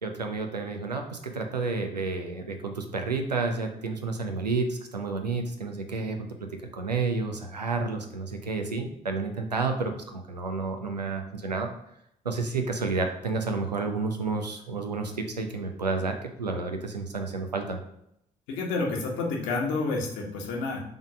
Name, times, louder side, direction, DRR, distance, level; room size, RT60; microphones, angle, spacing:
voice 1, 0.0-11.7 12.2-17.8, right 4 dB, 85° right, 4 dB, 0.6 m, -30 dB
voice 2, 18.5-20.8, left 3 dB, 65° left, 0 dB, 1.2 m, -29 dB
5.3 x 3.8 x 4.9 m, 0.76 s
figure-of-eight pair, 40°, 20 cm